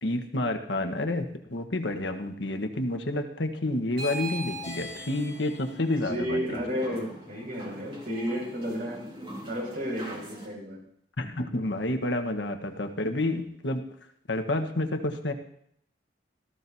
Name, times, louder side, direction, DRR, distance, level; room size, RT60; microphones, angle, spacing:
voice 1, 0.0-6.6 11.2-13.8 14.3-15.3, left 1 dB, 80° left, 6 dB, 1.3 m, -29 dB
sound 1, 3.9-10.5, equal, 30° right, 2.7 m, -41 dB
voice 2, 6.0-9.1 9.5-10.8, equal, 55° right, -1 dB, 6.2 m, -32 dB
18.0 x 14.0 x 2.8 m, 0.67 s
head